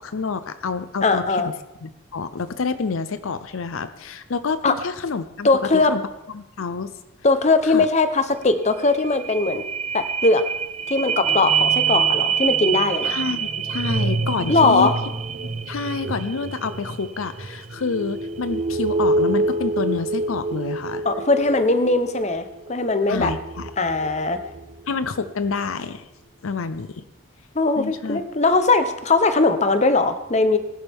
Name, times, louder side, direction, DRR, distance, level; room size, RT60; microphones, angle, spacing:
voice 1, 0.0-1.5 1.8-6.0 6.3-6.9 7.6-7.9 13.0-14.9 15.7-21.0 23.1-23.7 24.9-26.1 26.4-27.0 27.8-28.2, left 4 dB, 70° left, 12 dB, 0.6 m, -28 dB
voice 2, 1.0-1.5 4.6-4.7 5.4-5.9 7.2-9.6 9.9-10.4 10.9-13.2 14.5-15.0 21.0-23.3 23.8-24.4 27.5-30.6, left 3 dB, 35° left, 10 dB, 0.8 m, -20 dB
sound 1, 8.4-8.5 8.8-24.7 25.2-25.3, right 4 dB, 30° right, 0.4 m, -26 dB
20.0 x 11.5 x 3.6 m, 0.93 s
head